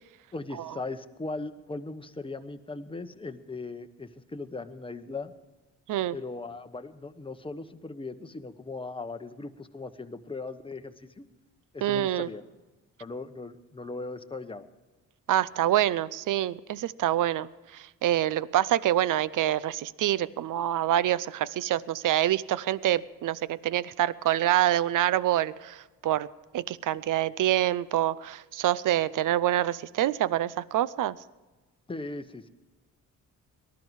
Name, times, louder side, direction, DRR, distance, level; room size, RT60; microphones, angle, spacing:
voice 1, 0.3-5.3 6.1-11.2 11.7-12.4 13.0-14.6 31.9-32.5, left 3 dB, 15° left, 8 dB, 1.0 m, -38 dB
voice 2, 11.8-12.3 15.3-17.5 17.7-26.3 26.5-31.2, right 13 dB, 65° right, 19 dB, 0.6 m, -26 dB
19.0 x 12.5 x 4.8 m, 1.2 s
cardioid pair, 95°, 34 cm